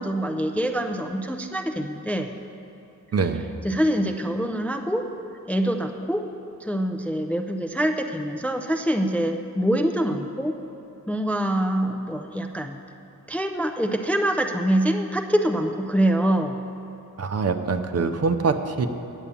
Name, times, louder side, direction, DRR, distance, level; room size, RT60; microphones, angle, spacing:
voice 1, 0.0-2.3 3.6-5.1 5.5-6.2 6.6-10.6 11.1-12.8 13.3-16.6, right 1 dB, 5° left, 4 dB, 0.3 m, -25 dB
voice 2, 3.1-3.5 17.2-18.9, right 4 dB, 50° right, 8 dB, 0.6 m, -24 dB
8.7 x 8.1 x 7.0 m, 3.0 s
wide cardioid pair, 160°, 33 cm